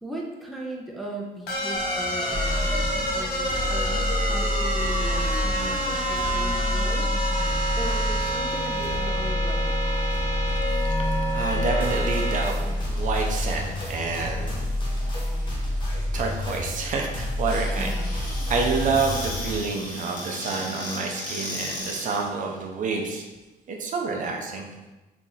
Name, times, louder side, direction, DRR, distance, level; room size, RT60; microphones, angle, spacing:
voice 1, 0.0-7.4 7.8-9.8 17.8-18.2, right 1 dB, ahead, -2 dB, 0.5 m, -38 dB
sound 1, 1.5-12.4, equal, 70° left, 0.7 m, -28 dB
sound 2, 2.3-19.6, left 1 dB, 30° left, 1.1 m, -28 dB
voice 2, 10.5-18.2 18.5-23.2 23.7-24.7, right 4 dB, 50° right, 1 dB, 0.6 m, -29 dB
Squeak / Cupboard open or close, 17.4-22.3, left 1 dB, 50° left, 1.1 m, -35 dB
2.8 x 2.5 x 3.9 m, 1.1 s
cardioid pair, 110°, 17 cm